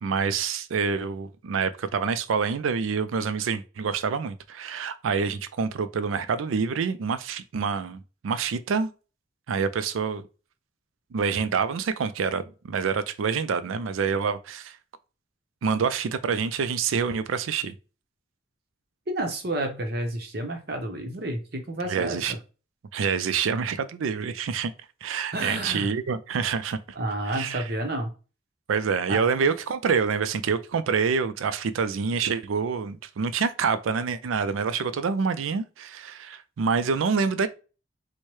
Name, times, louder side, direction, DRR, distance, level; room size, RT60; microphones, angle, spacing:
voice 1, 0.0-8.9 9.5-10.2 11.1-14.8 15.6-17.7 21.9-22.4 22.9-24.7 25.0-26.8 27.3-27.7 28.7-37.5, right 5 dB, 90° right, 0.4 m, -27 dB
voice 2, 19.1-22.3 25.3-25.9 27.0-28.1 29.1-29.2, right 1 dB, 50° right, 0.8 m, -30 dB
4.5 x 2.1 x 3.1 m
head